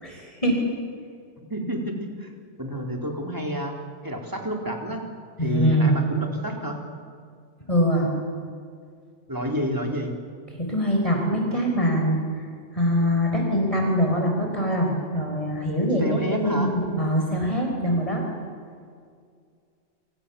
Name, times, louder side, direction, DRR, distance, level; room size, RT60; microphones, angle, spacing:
voice 1, 0.0-0.6 5.4-6.0 7.7-8.1 10.5-12.2 12.7-16.0 16.3-18.2, equal, 30° left, 0 dB, 4.7 m, -23 dB
voice 2, 1.5-2.3 2.6-3.7 4.0-5.0 5.4-6.8 9.3-10.2 16.0-16.7, equal, 15° right, 1 dB, 4.1 m, -29 dB
29.0 x 25.5 x 7.2 m, 2.2 s
omnidirectional pair, 1.2 m